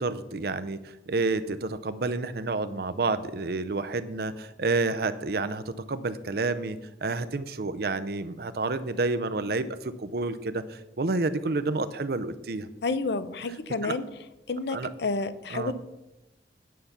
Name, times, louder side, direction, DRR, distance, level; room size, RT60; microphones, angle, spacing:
voice 1, 0.0-5.6 5.9-12.7 13.8-14.0 14.7-14.9 15.5-15.7, right 3 dB, 60° right, 12 dB, 0.6 m, -29 dB
voice 2, 12.8-14.0 14.5-15.7, left 3 dB, 70° left, 13 dB, 0.6 m, -30 dB
9.4 x 5.7 x 6.6 m, 0.97 s
head